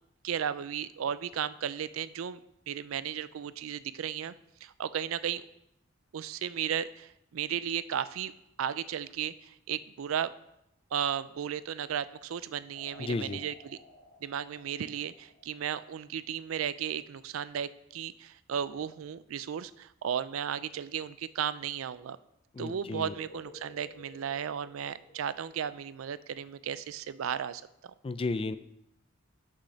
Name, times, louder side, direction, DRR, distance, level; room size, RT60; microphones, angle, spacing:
voice 1, 0.2-2.4 2.7-4.3 4.6-5.4 6.1-8.3 8.6-10.3 10.9-13.8 14.2-22.2 22.6-27.9, right 8 dB, 80° right, 16 dB, 0.4 m, -35 dB
sound 1, 12.7-16.1 23.0-25.8, equal, 50° left, 1.2 m, -53 dB
voice 2, 13.0-13.4 22.6-23.1 28.0-28.6, left 3 dB, 25° left, 13 dB, 0.4 m, -33 dB
6.3 x 6.3 x 5.6 m, 0.83 s
head